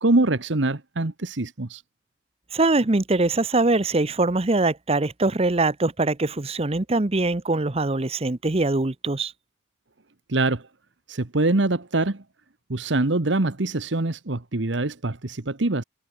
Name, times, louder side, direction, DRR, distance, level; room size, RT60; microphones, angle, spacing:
voice 1, 0.0-1.8 10.3-10.6 11.1-12.2 12.7-15.8, right 2 dB, 65° right, 1.3 m, -24 dB
voice 2, 2.5-9.3, right 2 dB, 30° right, 0.9 m, -22 dB
head